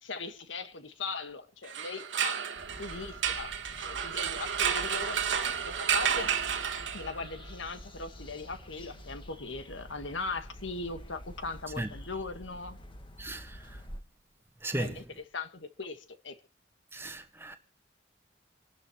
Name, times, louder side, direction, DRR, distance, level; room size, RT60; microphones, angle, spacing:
voice 1, 0.0-2.4 2.8-5.2 5.6-6.3 6.9-12.8 14.8-16.3, left 3 dB, 85° left, 1.6 m, -39 dB
sound 1, 1.6-7.3, right 8 dB, 80° right, 1.6 m, -31 dB
sound 2, 2.6-14.0, equal, 25° left, 1.6 m, -48 dB
voice 2, 13.2-13.6 14.6-15.0 16.9-17.6, right 1 dB, 15° right, 1.5 m, -35 dB
27.5 x 11.5 x 3.1 m
head